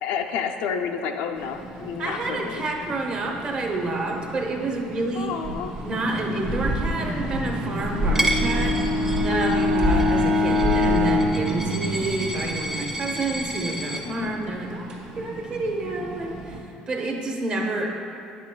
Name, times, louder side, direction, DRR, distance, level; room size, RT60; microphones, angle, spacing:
voice 1, 0.0-2.7 5.1-5.7 9.3-9.6 14.0-14.3, left 6 dB, 80° left, 5 dB, 0.4 m, -30 dB
sound 1, 1.3-16.6, right 1 dB, 55° right, 1.2 m, -31 dB
voice 2, 2.0-5.3 5.8-8.8 9.2-14.9 15.2-16.3 16.9-17.9, right 2 dB, 40° right, 1 dB, 0.8 m, -28 dB
Bowed string instrument, 7.8-12.4, left 2 dB, 80° right, 1.1 m, -24 dB
Coin (dropping), 8.1-14.0, right 1 dB, 15° right, 0.6 m, -31 dB
8.6 x 6.1 x 2.2 m, 2.7 s
cardioid pair, 120°, 3 cm